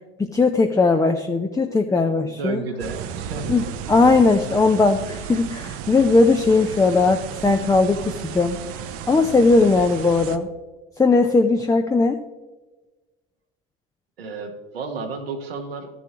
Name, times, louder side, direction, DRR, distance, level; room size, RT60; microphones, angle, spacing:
voice 1, 0.2-2.6 3.5-8.6 9.1-10.5 11.0-12.2, left 3 dB, 10° left, 5 dB, 0.6 m, -18 dB
voice 2, 2.2-3.7 14.2-15.9, right 4 dB, 85° right, 2 dB, 1.2 m, -32 dB
sound 1, 2.8-10.4, right 8 dB, 50° right, 0.7 m, -34 dB
14.0 x 7.0 x 3.0 m, 1.2 s
hypercardioid pair, 70°, 29 cm